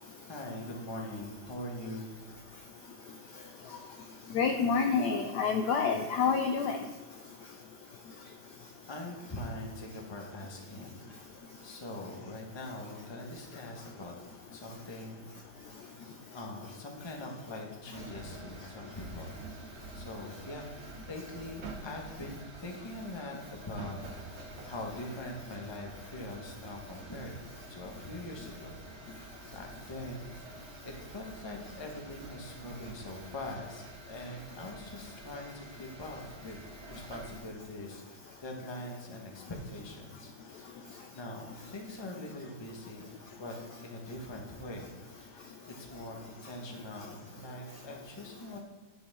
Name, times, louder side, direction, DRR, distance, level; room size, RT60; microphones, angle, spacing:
voice 1, 0.3-2.1 8.9-11.0 11.6-14.1 14.5-15.4 16.3-20.7 21.1-24.0 24.3-27.4 27.7-30.5 30.8-43.5 43.8-48.6, left 1 dB, 20° left, 1 dB, 0.9 m, -43 dB
voice 2, 4.3-6.8, left 5 dB, 70° left, 5 dB, 1.0 m, -28 dB
sound 1, 17.9-37.4, right 3 dB, 55° right, 0.7 m, -48 dB
9.7 x 6.0 x 3.6 m, 1.3 s
omnidirectional pair, 2.2 m